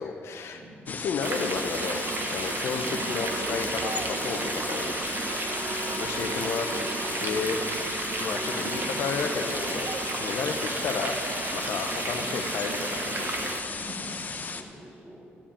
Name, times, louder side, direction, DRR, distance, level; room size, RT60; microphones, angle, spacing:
voice 1, 0.0-0.6 0.9-4.9 6.0-6.7 7.1-7.6 8.2-9.9 10.2-13.5, left 5 dB, 75° left, 5 dB, 0.8 m, -32 dB
sound 1, 0.9-14.6, left 4 dB, 40° left, 0.8 m, -36 dB
sound 2, 1.2-13.6, right 3 dB, 50° right, 1.1 m, -32 dB
voice 2, 2.6-3.1 13.7-15.2, right 1 dB, 20° right, -3 dB, 2.6 m, -45 dB
14.5 x 5.0 x 8.7 m, 2.6 s
cardioid pair, 95°, 5 cm